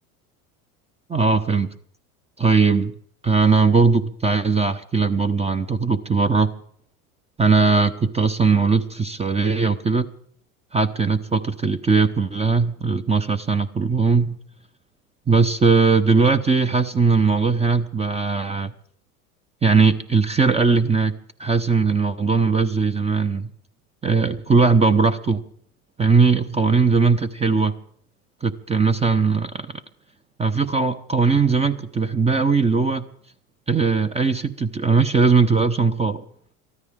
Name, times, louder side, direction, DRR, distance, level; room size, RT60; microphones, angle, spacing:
voice 1, 1.1-1.7 2.4-2.9 3.2-6.5 7.4-10.1 10.7-14.4 15.3-18.7 19.6-21.1 21.4-23.5 24.0-25.4 26.0-27.7 28.4-29.7 30.4-33.0 33.7-36.2, right 4 dB, 15° right, 0.8 m, -19 dB
23.5 x 14.0 x 3.6 m
hypercardioid pair, 95°, 44 cm